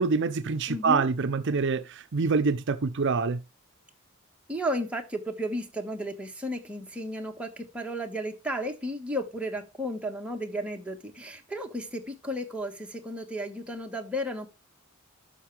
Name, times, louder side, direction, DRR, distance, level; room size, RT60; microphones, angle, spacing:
voice 1, 0.0-3.4, right 4 dB, 55° right, 0.6 m, -26 dB
voice 2, 0.7-1.0 4.5-14.5, equal, 5° right, 1.4 m, -33 dB
12.0 x 5.8 x 3.3 m
head